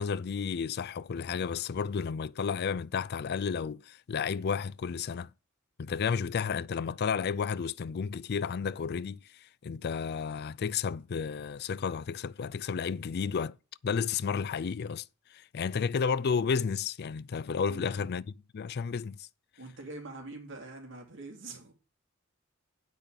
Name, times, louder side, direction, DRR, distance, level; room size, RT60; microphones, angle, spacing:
voice 1, 0.0-5.3 5.8-9.2 9.6-13.5 13.8-15.0 15.3-18.3 18.5-19.3, left 6 dB, 50° left, 0.4 m, -32 dB
voice 2, 17.7-18.1 19.6-21.7, right 2 dB, 65° right, 3.3 m, -44 dB
8.6 x 6.2 x 6.8 m
head